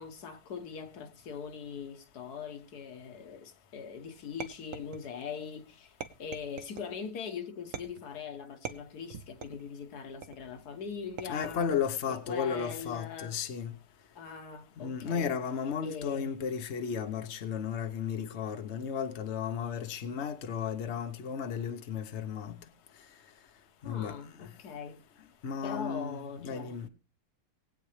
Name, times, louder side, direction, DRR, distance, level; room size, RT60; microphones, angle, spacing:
voice 1, 0.0-5.9 6.2-13.4 14.1-15.4 15.8-16.3 23.8-25.0 25.6-26.8, left 6 dB, 80° left, 1.6 m, -41 dB
sound 1, 4.4-5.3 6.0-6.9 7.7-8.2 8.6-9.7 10.2-10.6 11.2-11.8 12.6-13.0, right 7 dB, 60° right, 1.1 m, -43 dB
voice 2, 11.3-13.7 14.8-22.6 23.8-24.2 25.4-26.9, left 7 dB, 50° left, 1.2 m, -34 dB
20.0 x 8.6 x 3.3 m
omnidirectional pair, 1.7 m